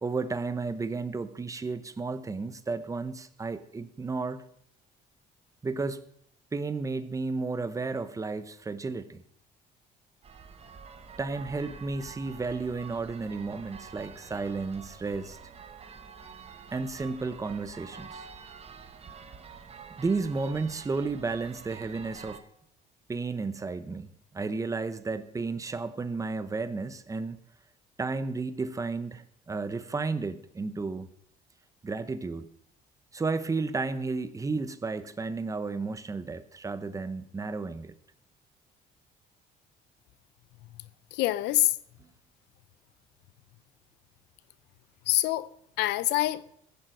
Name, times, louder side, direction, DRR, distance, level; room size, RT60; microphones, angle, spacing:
voice 1, 0.0-4.4 5.6-6.0 6.5-9.2 11.2-15.4 16.7-18.3 20.0-22.4 23.1-27.4 28.0-31.1 31.8-32.5 33.1-37.9, right 4 dB, 20° right, 0.9 m, -33 dB
sound 1, 10.2-22.4, right 6 dB, 35° right, 1.3 m, -47 dB
voice 2, 40.8-41.8 45.1-45.5 45.8-46.4, left 17 dB, 85° left, 0.6 m, -26 dB
15.5 x 7.5 x 6.6 m
cardioid pair, 110°, 17 cm